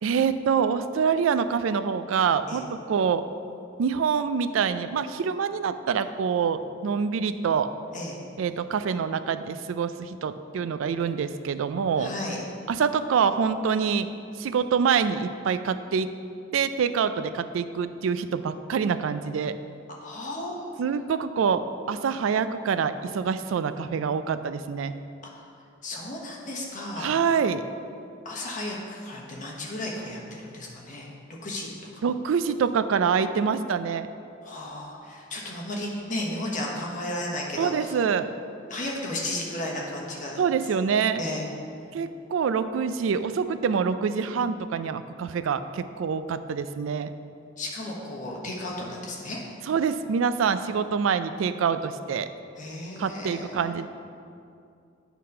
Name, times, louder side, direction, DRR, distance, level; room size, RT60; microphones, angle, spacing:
voice 1, 0.0-3.2 3.8-7.7 8.4-12.1 12.7-14.1 14.4-16.1 16.5-19.5 20.8-24.9 27.0-27.6 32.0-34.1 37.6-38.3 40.4-41.2 41.9-47.1 49.7-52.3 53.0-53.9, right 6 dB, 80° right, 11 dB, 0.3 m, -26 dB
voice 2, 12.0-12.4 20.0-20.7 25.3-25.4 25.8-27.2 28.2-31.1 31.4-32.0 34.4-38.0 38.7-40.4 41.2-41.5 47.6-49.4 52.6-53.8, left 1 dB, 40° left, -2 dB, 1.3 m, -34 dB
9.3 x 4.0 x 5.4 m, 2.5 s
head